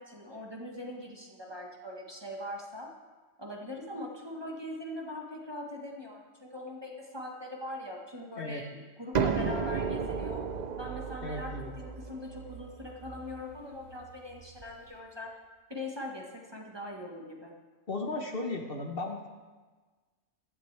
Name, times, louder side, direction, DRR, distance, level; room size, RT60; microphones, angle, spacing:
voice 1, 0.0-2.9 3.4-10.4 10.8-15.3 15.7-17.5, left 1 dB, 20° right, -1 dB, 1.4 m, -41 dB
sound 1, 9.1-14.7, right 6 dB, 45° right, 0.6 m, -34 dB
voice 2, 11.2-11.7 17.9-19.3, left 2 dB, 50° left, 2 dB, 1.4 m, -35 dB
16.0 x 12.5 x 3.4 m, 1.3 s
omnidirectional pair, 1.3 m